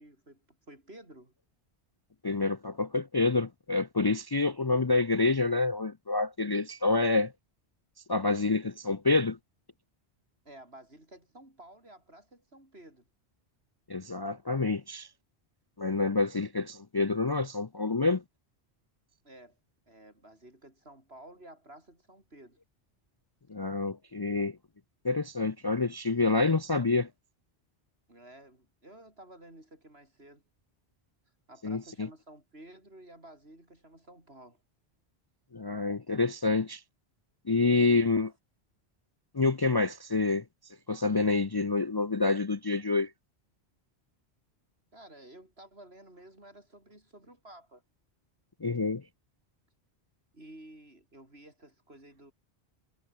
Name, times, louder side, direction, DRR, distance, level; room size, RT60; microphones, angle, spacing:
voice 1, 0.0-1.3 10.4-13.0 19.2-19.6 19.9-22.6 28.1-30.4 31.5-34.6 37.8-38.0 44.9-47.8 50.3-52.3, right 1 dB, 70° right, 8.0 m, -52 dB
voice 2, 2.2-7.3 8.1-9.4 13.9-15.1 15.8-18.2 23.5-24.6 25.0-27.1 31.6-32.1 35.5-36.8 37.5-38.3 39.3-40.4 40.9-43.1 48.6-49.0, left 3 dB, 30° left, 0.5 m, -27 dB
omnidirectional pair, 1.1 m